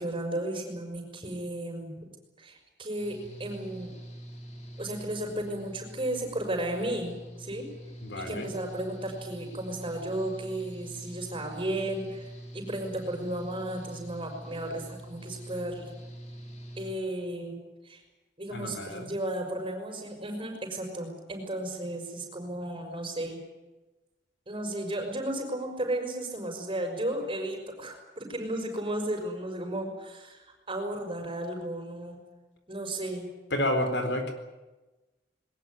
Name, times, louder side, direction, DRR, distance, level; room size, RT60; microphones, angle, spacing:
voice 1, 0.0-1.9 2.4-3.9 4.8-7.7 8.1-15.9 16.8-18.0 18.4-23.4 24.5-32.2 32.7-33.3, right 1 dB, 30° right, 4 dB, 5.9 m, -34 dB
Engine / Mechanical fan, 3.0-16.9, right 1 dB, 40° left, 3.9 m, -45 dB
voice 2, 8.0-8.5 18.5-19.1 33.5-34.3, left 1 dB, 75° left, 6 dB, 4.0 m, -30 dB
21.5 x 19.5 x 9.7 m, 1.1 s
head